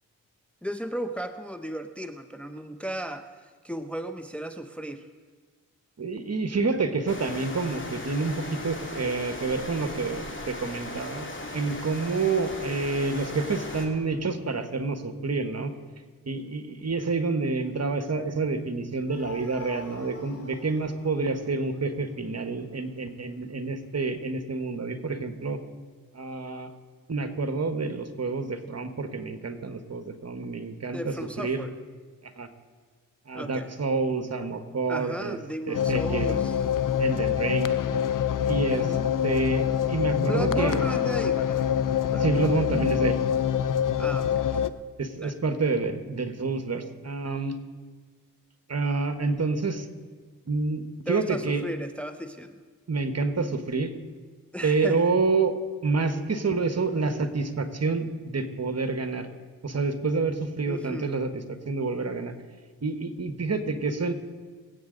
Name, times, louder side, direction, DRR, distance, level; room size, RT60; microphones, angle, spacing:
voice 1, 0.6-5.1 30.9-31.7 33.3-33.7 34.9-36.6 38.6-39.1 40.2-41.7 42.1-42.7 44.0-44.7 45.2-45.3 51.1-52.6 54.5-55.0 60.7-61.1, equal, 5° left, 7 dB, 0.8 m, -35 dB
voice 2, 6.0-15.7 16.3-25.6 26.1-26.7 27.1-31.7 32.4-32.5 33.3-35.4 35.7-36.4 37.0-37.7 38.5-38.9 39.2-40.8 42.2-43.2 45.0-47.6 48.7-49.9 50.5-51.6 52.9-53.9 54.6-55.6 55.8-59.3 59.6-61.3 61.7-62.3 62.8-64.1, right 3 dB, 45° right, 8 dB, 1.4 m, -28 dB
sound 1, 7.1-13.9, left 2 dB, 35° left, 2.6 m, -37 dB
sound 2, 19.1-22.5, left 3 dB, 90° left, 3.9 m, -46 dB
sound 3, 35.7-44.7, left 9 dB, 65° left, 0.6 m, -25 dB
23.5 x 8.6 x 3.9 m, 1.4 s
cardioid pair, 50°, 35 cm